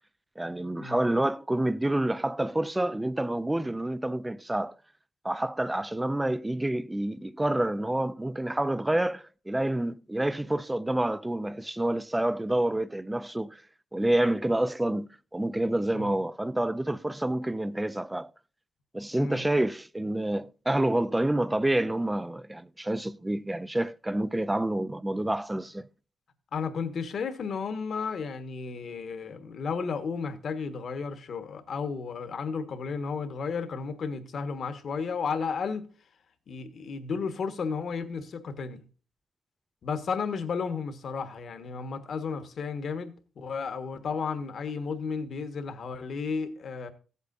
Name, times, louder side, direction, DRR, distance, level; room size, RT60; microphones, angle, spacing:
voice 1, 0.4-4.8 5.2-13.6 13.9-18.3 18.9-25.9, right 1 dB, 10° right, 0.4 m, -28 dB
voice 2, 26.5-35.9 36.5-38.8 39.8-46.9, left 5 dB, 50° left, 1.3 m, -33 dB
15.5 x 8.2 x 2.5 m
cardioid pair, 140°, 0 cm